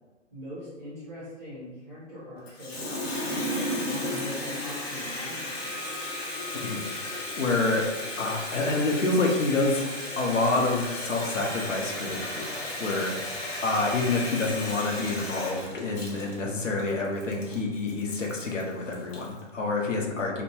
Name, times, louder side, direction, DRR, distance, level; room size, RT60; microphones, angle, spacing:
voice 1, 0.3-6.0, left 1 dB, 10° right, -9 dB, 0.5 m, -42 dB
Water tap faucet, 2.5-19.4, left 1 dB, 55° left, 0.8 m, -35 dB
Wind instrument woodwind instrument, 4.6-8.7, left 3 dB, 25° left, 0.8 m, -47 dB
voice 2, 6.5-20.4, left 3 dB, 85° left, 0 dB, 0.7 m, -28 dB
sound 1, 10.8-16.5, right 4 dB, 70° right, 0.5 m, -45 dB
2.8 x 2.1 x 2.8 m, 1.2 s
figure-of-eight pair, 135°, 36 cm